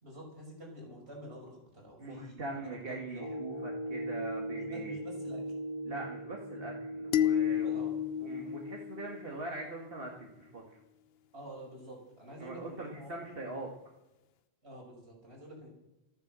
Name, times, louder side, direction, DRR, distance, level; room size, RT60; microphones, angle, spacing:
voice 1, 0.0-3.3 4.5-5.6 7.4-7.9 11.3-13.1 14.6-15.7, right 1 dB, 85° right, -2 dB, 5.7 m, -48 dB
voice 2, 2.0-5.0 5.9-7.9 8.2-10.8 12.4-13.7, right 2 dB, 65° right, -1 dB, 2.1 m, -42 dB
sound 1, 3.2-8.7, right 1 dB, 20° left, 1.8 m, -40 dB
sound 2, 7.1-9.5, left 11 dB, 75° left, 0.9 m, -31 dB
14.0 x 10.5 x 7.5 m, 0.95 s
omnidirectional pair, 1.0 m